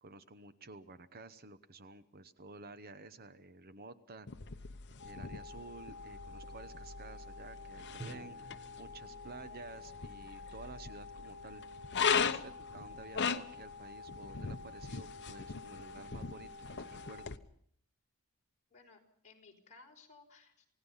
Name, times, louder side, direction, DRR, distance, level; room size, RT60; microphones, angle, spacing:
voice 1, 0.0-4.3 5.0-11.6 12.3-16.5 16.7-17.3, right 3 dB, 45° right, 12 dB, 0.9 m, -52 dB
sound 1, 4.3-17.4, left 6 dB, 50° left, 0.9 m, -39 dB
sound 2, 5.0-17.3, left 4 dB, 70° left, 1.0 m, -50 dB
Drum, 8.0-12.0, right 2 dB, 20° right, 7.8 m, -53 dB
voice 2, 18.7-20.7, left 4 dB, 35° left, 0 dB, 4.6 m, -59 dB
28.5 x 17.5 x 5.6 m, 0.65 s
head